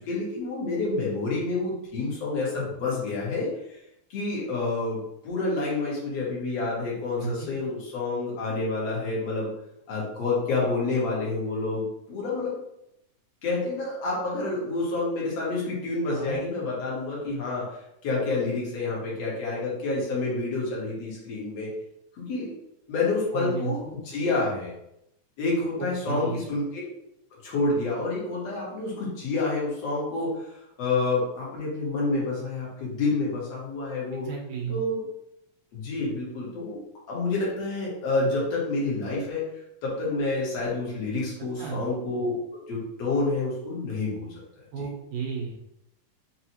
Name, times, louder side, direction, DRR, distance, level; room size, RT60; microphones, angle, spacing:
voice 1, 0.0-3.8 4.1-9.5 9.9-12.5 13.4-21.7 22.1-22.5 22.9-23.8 24.1-24.7 25.4-26.6 27.4-30.5 30.8-34.3 34.7-35.0 35.7-36.8 37.1-39.4 39.8-42.4 42.7-44.4, left 3 dB, 60° left, -5 dB, 2.2 m, -28 dB
voice 2, 7.2-7.5 16.1-16.4 23.3-23.7 25.8-26.4 34.2-34.8 41.6-41.8 44.7-45.5, right 6 dB, 75° right, -1 dB, 2.1 m, -33 dB
5.4 x 2.4 x 2.9 m, 0.80 s
omnidirectional pair, 3.5 m